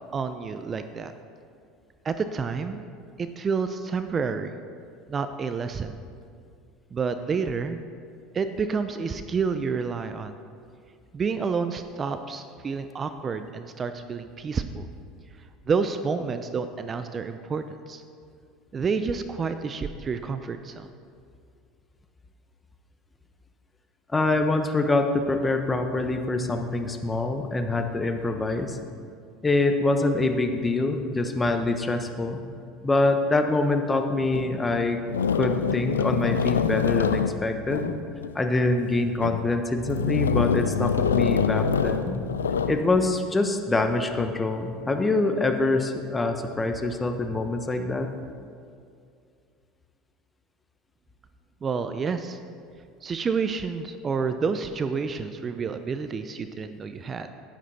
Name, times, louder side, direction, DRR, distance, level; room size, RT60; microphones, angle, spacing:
voice 1, 0.1-1.1 2.0-2.9 3.2-4.6 5.1-5.9 6.9-7.8 8.3-10.3 11.1-14.9 15.7-18.0 18.7-20.9 51.6-52.4 53.0-57.3, right 5 dB, 30° right, 9 dB, 0.6 m, -29 dB
voice 2, 24.1-28.8 29.4-32.4 32.8-35.0 35.3-37.9 38.3-42.2 42.7-48.1, left 2 dB, 20° left, 6 dB, 1.0 m, -25 dB
sound 1, 34.3-34.5 35.1-38.3 39.0-39.5 39.8-42.9, left 6 dB, 90° left, 0.4 m, -25 dB
11.0 x 10.0 x 4.3 m, 2.3 s
hypercardioid pair, 75°, 0 cm